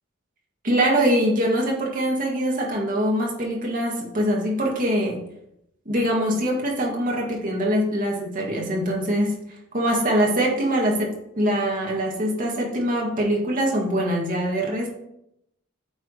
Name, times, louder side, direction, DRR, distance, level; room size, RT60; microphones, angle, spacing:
voice 1, 0.6-5.2 5.9-9.3 9.7-14.9, equal, 40° right, -1 dB, 1.8 m, -23 dB
8.8 x 3.5 x 4.9 m, 0.78 s
head